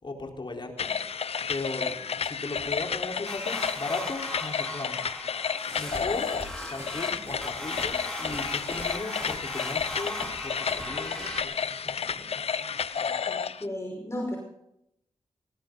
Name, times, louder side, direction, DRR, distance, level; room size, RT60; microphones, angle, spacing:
voice 1, 0.0-0.9 1.5-5.0 5.7-6.3 6.7-11.6 11.8-13.2, left 2 dB, 50° left, 1 dB, 4.2 m, -37 dB
sound 1, 0.8-13.6, left 6 dB, 70° left, 0.8 m, -31 dB
sound 2, 3.3-11.4, equal, 5° left, 4.9 m, -39 dB
sound 3, 5.7-11.4, right 1 dB, 25° right, 8.0 m, -44 dB
voice 2, 13.3-14.4, left 1 dB, 25° left, -1 dB, 5.8 m, -34 dB
19.5 x 18.5 x 4.0 m, 0.80 s
cardioid pair, 55°, 11 cm